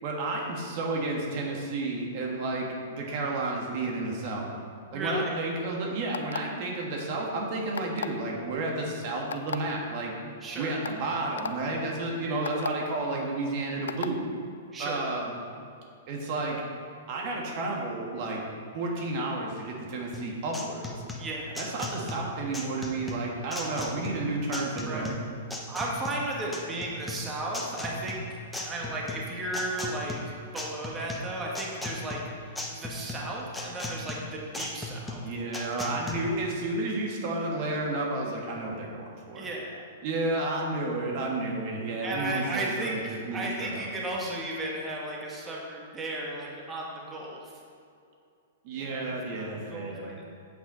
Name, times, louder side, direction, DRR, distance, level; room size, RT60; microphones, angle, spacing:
voice 1, 0.0-4.5 4.9-10.1 10.6-14.2 14.8-15.3 16.1-16.6 17.1-18.4 18.7-21.0 21.6-25.1 35.2-39.5 40.0-43.9 48.6-50.1, right 2 dB, 50° right, -1 dB, 1.6 m, -31 dB
voice 2, 4.9-5.4 10.4-10.8 12.2-12.5 14.7-15.0 21.2-21.6 24.8-25.1 25.7-35.3 39.3-39.9 42.0-47.5 48.8-50.2, right 1 dB, 20° right, -3 dB, 1.7 m, -35 dB
sound 1, 6.1-6.6 7.7-8.2 9.3-9.6 10.3-10.4 10.8-11.0 11.4-11.5 12.4-12.7 13.9-14.1, left 7 dB, 80° left, 0.4 m, -33 dB
sound 2, 20.1-36.1, left 1 dB, 5° left, 1.1 m, -37 dB
8.1 x 8.0 x 3.9 m, 2.4 s
hypercardioid pair, 115°, 0 cm